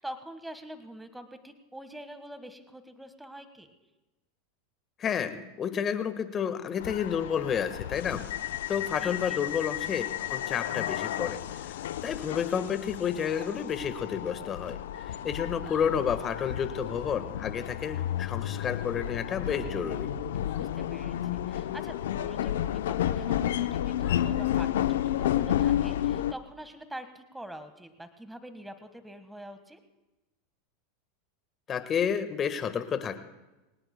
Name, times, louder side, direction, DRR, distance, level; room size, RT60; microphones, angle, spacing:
voice 1, 0.0-3.7 9.0-9.4 20.5-29.8, right 1 dB, 5° right, 9 dB, 1.4 m, -45 dB
voice 2, 5.0-8.3 8.7-11.7 12.0-14.8 15.0-20.1 31.7-33.2, left 7 dB, 35° left, 10 dB, 1.4 m, -30 dB
sound 1, 6.8-26.3, left 11 dB, 75° left, 0.6 m, -32 dB
sound 2, 13.3-13.5 15.6-15.8 17.8-18.0 19.3-19.6 20.4-20.6 22.7-22.9 24.0-24.2, left 11 dB, 60° left, 5.1 m, -49 dB
sound 3, 19.5-24.6, right 6 dB, 60° right, 5.1 m, -48 dB
23.0 x 19.0 x 2.2 m, 1.1 s
hypercardioid pair, 95°, 0 cm